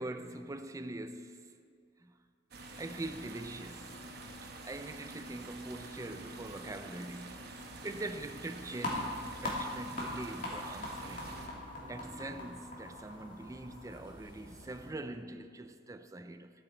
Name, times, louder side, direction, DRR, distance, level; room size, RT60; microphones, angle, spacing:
voice 1, 0.0-1.6 2.0-2.1 2.8-4.0 4.4-7.4 7.8-11.4 11.9-16.5, right 2 dB, 20° right, 0.4 m, -43 dB
sound 1, 2.5-11.5, right 2 dB, 65° right, 1.0 m, -47 dB
sound 2, 8.8-14.9, left 1 dB, 50° left, 2.4 m, -41 dB
11.5 x 8.0 x 4.5 m
head